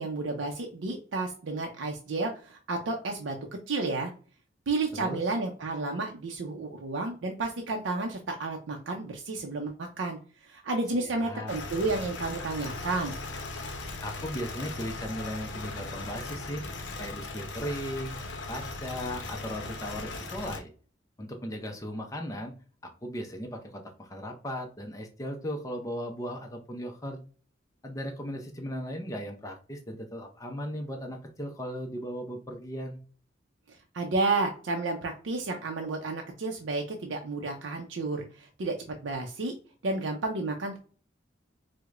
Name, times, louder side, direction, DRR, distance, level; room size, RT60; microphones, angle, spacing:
voice 1, 0.0-3.4 3.7-4.1 4.7-13.1 33.7-39.5 39.8-40.8, right 3 dB, 90° right, 2 dB, 0.5 m, -31 dB
voice 2, 10.9-11.5 14.0-16.6 17.0-18.2 18.5-20.7 21.2-22.5 23.0-27.2 27.8-33.0, equal, 20° left, 2 dB, 0.5 m, -37 dB
sound 1, 11.5-20.6, left 3 dB, 75° left, 0.6 m, -38 dB
4.6 x 2.1 x 2.4 m, 0.40 s
head